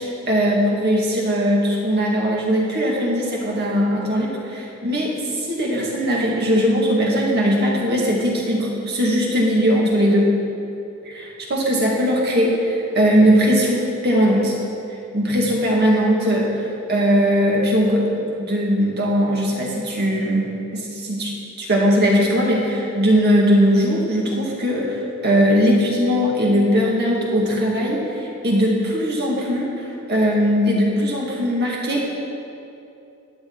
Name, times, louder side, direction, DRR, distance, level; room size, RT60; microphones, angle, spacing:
voice 1, 0.0-10.3 11.1-14.6 15.1-21.3 21.6-25.0 25.2-32.0, equal, 50° right, -3 dB, 2.1 m, -19 dB
13.0 x 9.7 x 4.0 m, 2.7 s
head